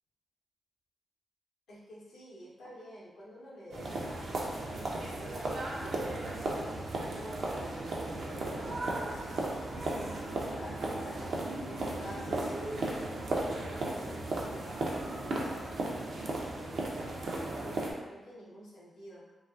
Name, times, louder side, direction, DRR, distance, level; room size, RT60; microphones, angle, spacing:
voice 1, 1.7-4.3 4.7-6.7 7.1-11.3 11.7-15.6 16.0-19.2, equal, 85° left, -7 dB, 0.7 m, -49 dB
sound 1, 3.7-17.9, right 2 dB, 70° right, 0.4 m, -35 dB
2.5 x 2.3 x 2.3 m, 1.2 s
supercardioid pair, 40°, 0 cm